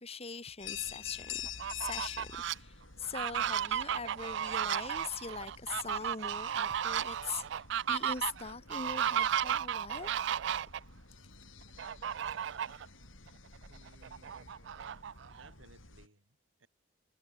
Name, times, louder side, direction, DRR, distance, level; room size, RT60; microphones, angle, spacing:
voice 1, 0.0-1.4 1.7-10.1, left 5 dB, 30° left, 2.2 m, -42 dB
sound 1, 0.6-16.1, left 8 dB, 80° left, 5.1 m, -49 dB
Fowl, 1.5-2.5 3.0-10.8 11.8-12.8 13.3-13.4 13.7-15.5, right 9 dB, 60° right, 0.4 m, -34 dB
voice 2, 13.7-14.6 15.4-16.7, right 2 dB, 80° right, 6.1 m, -61 dB
head